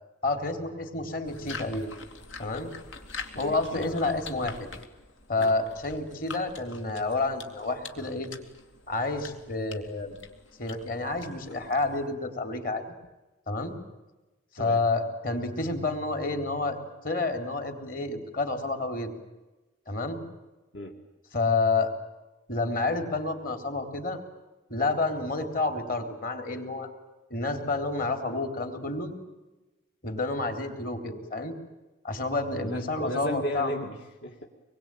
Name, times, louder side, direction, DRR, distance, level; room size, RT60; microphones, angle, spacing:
voice 1, 0.2-1.9 2.4-2.7 3.4-4.7 5.3-8.3 8.9-10.2 10.6-12.9 13.5-13.7 14.5-16.8 17.0-19.1 19.9-20.2 21.3-21.9 22.5-24.2 24.7-26.9 27.3-29.1 30.0-31.5 32.0-33.7, left 3 dB, 45° left, 6 dB, 3.6 m, -29 dB
sound 1, 1.2-12.1, left 4 dB, 80° left, 2.9 m, -45 dB
voice 2, 3.3-4.0 5.4-5.5 14.6-14.8 20.7-21.0 32.6-34.5, left 1 dB, 60° left, 0 dB, 2.4 m, -35 dB
26.0 x 22.5 x 9.1 m, 1.1 s
head